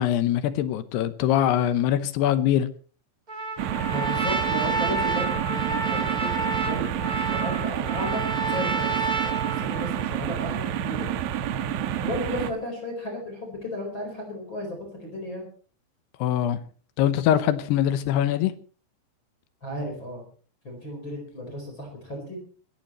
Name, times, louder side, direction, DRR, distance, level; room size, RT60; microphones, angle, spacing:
voice 1, 0.0-2.7 16.2-16.6 17.0-18.5, left 11 dB, 75° left, 2.8 m, -23 dB
Trumpet, 3.3-10.1, right 4 dB, 25° right, 2.7 m, -29 dB
sound 1, 3.6-12.5, right 10 dB, 80° right, 3.6 m, -29 dB
voice 2, 3.9-11.1 11.7-11.8 12.0-15.5 19.6-20.2 20.6-22.4, equal, 25° left, 4.8 m, -34 dB
25.5 x 14.5 x 3.1 m
omnidirectional pair, 5.4 m